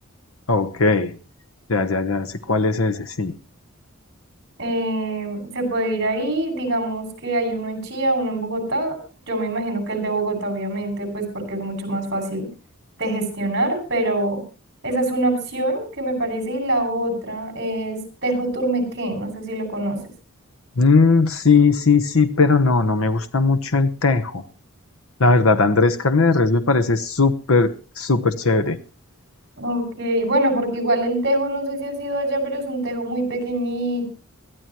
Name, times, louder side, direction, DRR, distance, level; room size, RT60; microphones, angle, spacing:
voice 1, 0.5-1.1 1.7-3.3 20.8-24.4 25.2-28.8, left 4 dB, 85° left, 11 dB, 1.0 m, -18 dB
voice 2, 4.6-9.0 9.3-12.5 13.0-14.4 14.8-20.0 29.6-34.1, right 1 dB, 55° right, 7 dB, 6.2 m, -24 dB
22.0 x 14.0 x 3.0 m, 0.33 s
head